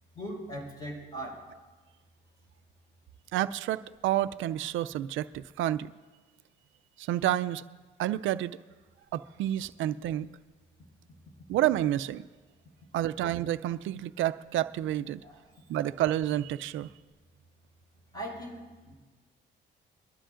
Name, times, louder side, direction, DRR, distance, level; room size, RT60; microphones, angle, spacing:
voice 1, 0.1-1.5 15.2-15.5 18.1-18.9, right 1 dB, 20° left, 0 dB, 4.7 m, -40 dB
voice 2, 3.3-5.9 7.0-7.6 8.0-8.6 9.1-10.3 11.5-12.3 12.9-15.2 15.7-16.9, right 13 dB, 80° right, 14 dB, 0.4 m, -29 dB
22.5 x 12.5 x 2.5 m, 1.3 s
cardioid pair, 90°, 20 cm